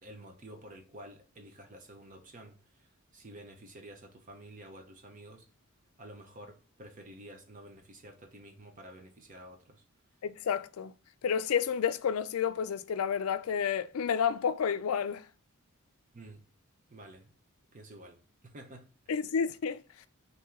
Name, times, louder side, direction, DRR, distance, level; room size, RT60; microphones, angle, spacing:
voice 1, 0.0-5.5 6.0-9.8 16.1-16.4 16.9-17.3 17.7-19.2, right 1 dB, 35° right, 0.6 m, -50 dB
voice 2, 10.2-10.9 11.2-15.3 19.1-19.8, left 7 dB, 70° left, 0.4 m, -30 dB
4.3 x 2.7 x 3.6 m
head